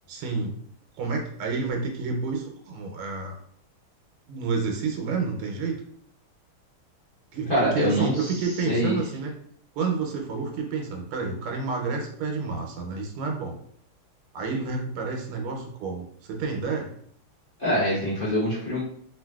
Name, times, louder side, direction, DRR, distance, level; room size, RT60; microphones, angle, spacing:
voice 1, 0.1-0.5 1.0-3.4 4.3-5.7 7.3-9.3 9.7-13.6 14.3-16.9, right 4 dB, 85° right, 2 dB, 1.5 m, -29 dB
voice 2, 7.5-8.3 8.7-8.9 17.6-18.8, equal, 70° left, -10 dB, 0.5 m, -24 dB
3.5 x 2.5 x 2.2 m, 0.64 s
omnidirectional pair, 2.3 m